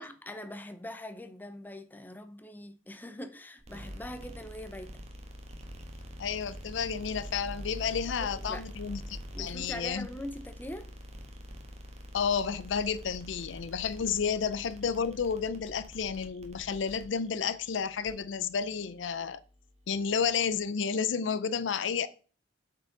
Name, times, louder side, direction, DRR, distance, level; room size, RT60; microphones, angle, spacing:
voice 1, 0.0-5.0 8.2-8.7 9.3-10.9, left 1 dB, 10° left, 0.6 m, -42 dB
sound 1, 3.6-20.7, equal, 35° right, 1.4 m, -46 dB
voice 2, 6.2-10.1 12.1-19.4 19.9-22.1, left 6 dB, 75° left, 0.5 m, -31 dB
8.0 x 4.7 x 3.8 m
head